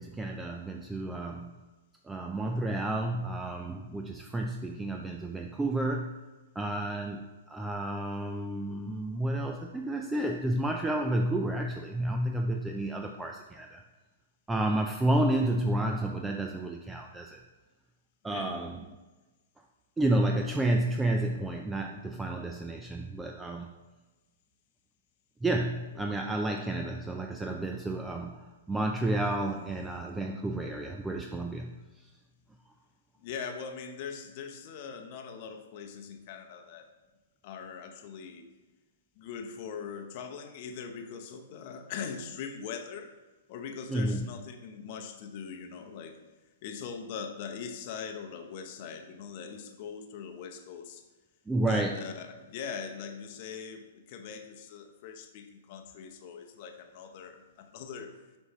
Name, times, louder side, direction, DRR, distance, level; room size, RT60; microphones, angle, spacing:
voice 1, 0.0-1.5 2.0-6.2 6.6-13.8 14.5-17.4 18.2-18.8 20.0-23.7 25.4-31.8 43.9-44.3 51.5-52.0, right 1 dB, 10° right, 3 dB, 0.3 m, -31 dB
voice 2, 18.3-18.6 33.2-36.9 37.4-38.5 39.2-43.1 43.5-46.2 46.6-51.0 51.7-58.2, left 6 dB, 45° left, 5 dB, 0.8 m, -41 dB
6.2 x 5.4 x 3.0 m, 1.2 s
hypercardioid pair, 135°, 0 cm